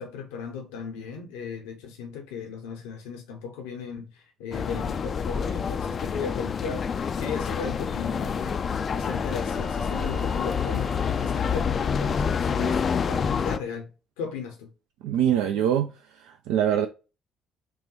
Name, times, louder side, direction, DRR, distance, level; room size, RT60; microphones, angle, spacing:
voice 1, 0.0-13.9 14.2-14.7, left 6 dB, 75° left, 0.7 m, -37 dB
sound 1, 4.5-13.6, left 6 dB, 45° left, 0.3 m, -27 dB
Wind instrument woodwind instrument, 7.8-12.5, right 5 dB, ahead, 0.7 m, -47 dB
voice 2, 15.0-16.9, right 10 dB, 70° right, 0.3 m, -24 dB
6.0 x 2.2 x 2.9 m
figure-of-eight pair, 50°, 0 cm